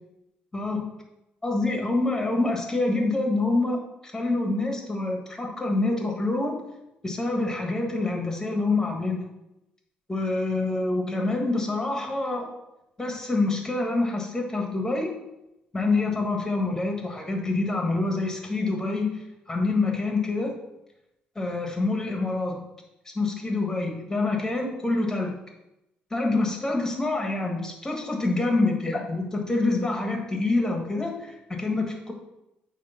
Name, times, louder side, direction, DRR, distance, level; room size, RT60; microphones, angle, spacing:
voice 1, 0.5-0.9 1.4-6.6 7.0-9.2 10.1-12.5 13.0-15.1 15.7-20.5 21.3-22.6 23.1-25.4 26.1-32.1, left 2 dB, 15° left, 2 dB, 1.6 m, -26 dB
8.8 x 3.1 x 5.9 m, 0.90 s
cardioid pair, 110°, 3 cm